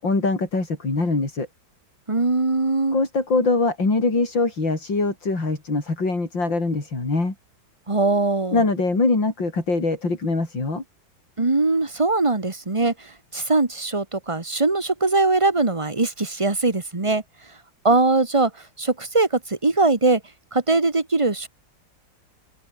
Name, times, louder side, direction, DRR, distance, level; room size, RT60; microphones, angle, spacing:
voice 1, 0.0-1.5 2.9-7.3 8.5-10.8, left 3 dB, 85° left, 6.2 m, -23 dB
voice 2, 2.1-3.0 7.9-8.6 11.4-17.2 17.8-18.5 18.8-20.2 20.5-21.5, right 3 dB, 15° right, 1.8 m, -21 dB
open air
omnidirectional pair, 2.0 m